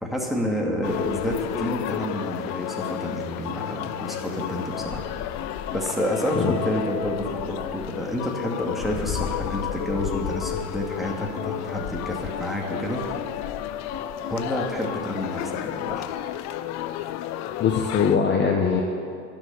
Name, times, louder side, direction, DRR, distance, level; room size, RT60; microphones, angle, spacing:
voice 1, 0.0-5.1 5.7-13.0 14.3-16.1, equal, ahead, -2 dB, 2.4 m, -29 dB
sound 1, 0.8-18.2, left 11 dB, 45° left, 0.6 m, -32 dB
voice 2, 17.6-18.8, left 6 dB, 30° left, 2 dB, 1.1 m, -21 dB
12.0 x 6.8 x 9.8 m, 2.5 s
hypercardioid pair, 90°, 39 cm